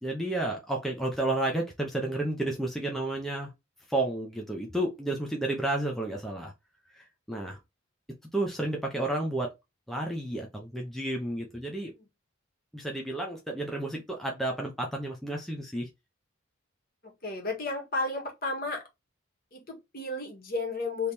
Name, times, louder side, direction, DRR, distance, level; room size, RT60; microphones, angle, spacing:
voice 1, 0.0-3.5 3.9-6.5 6.9-7.6 8.3-9.5 9.9-11.9 12.7-15.9, right 1 dB, ahead, 0.7 m, -31 dB
voice 2, 17.0-18.8 19.5-21.1, left 3 dB, 45° left, 1.7 m, -33 dB
3.5 x 3.2 x 4.3 m
head